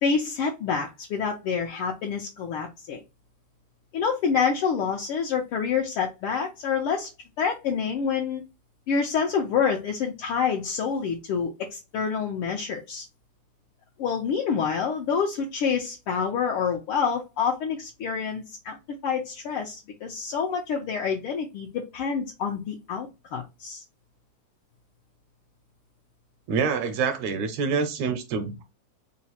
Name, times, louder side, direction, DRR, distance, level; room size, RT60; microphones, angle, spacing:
voice 1, 0.0-3.0 3.9-7.1 7.4-8.4 8.9-13.0 14.0-18.8 19.0-23.8, left 6 dB, 80° left, 1.2 m, -27 dB
voice 2, 26.5-28.6, right 5 dB, 75° right, 1.9 m, -26 dB
4.8 x 2.0 x 4.2 m
omnidirectional pair, 3.5 m